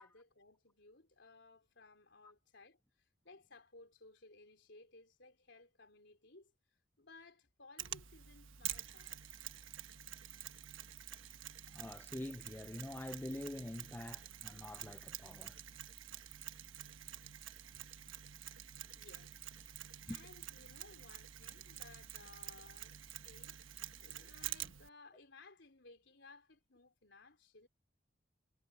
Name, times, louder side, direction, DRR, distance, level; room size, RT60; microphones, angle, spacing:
voice 1, 0.0-2.8 3.2-6.5 7.0-9.2 18.9-19.4 20.1-23.0 23.2-23.6 24.0-27.7, left 3 dB, 65° left, 4.2 m, -60 dB
Mechanisms, 7.8-24.9, right 11 dB, 85° right, 1.1 m, -48 dB
voice 2, 11.7-15.6 20.1-20.2, left 1 dB, 10° left, 0.4 m, -46 dB
head